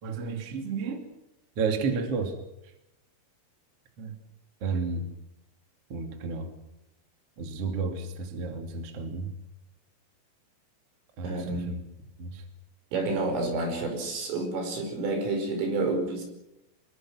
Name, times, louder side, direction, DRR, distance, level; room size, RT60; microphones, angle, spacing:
voice 1, 0.0-1.1 1.6-2.4 2.6-2.7 4.0-4.1 4.6-5.1 5.9-6.5 7.4-9.3 11.2-11.8 12.2-12.4, right 4 dB, 35° right, 5 dB, 2.9 m, -32 dB
voice 2, 11.2-11.7 12.9-16.2, right 3 dB, 75° right, 4 dB, 7.7 m, -29 dB
26.0 x 22.5 x 6.4 m, 0.88 s
omnidirectional pair, 5.8 m